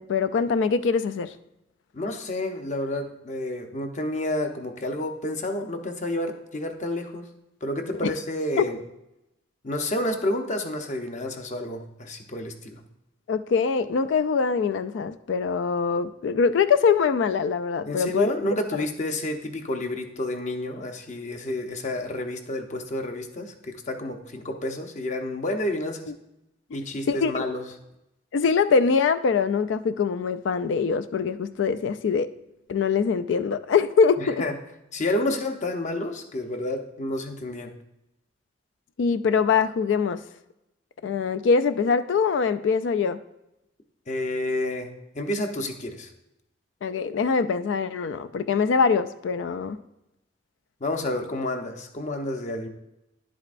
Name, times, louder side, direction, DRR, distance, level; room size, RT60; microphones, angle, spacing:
voice 1, 0.0-1.3 8.0-8.1 8.6-8.7 13.3-18.3 27.1-27.4 28.3-32.3 32.7-34.4 39.0-40.2 41.0-43.2 46.8-49.8, left 5 dB, 75° left, 12 dB, 0.4 m, -23 dB
voice 2, 1.9-7.3 7.6-8.8 9.6-12.8 17.9-26.1 26.7-27.7 34.2-34.6 34.9-37.7 44.1-46.1 50.8-52.7, left 1 dB, 40° left, 5 dB, 0.8 m, -30 dB
10.5 x 7.6 x 2.5 m, 0.89 s
head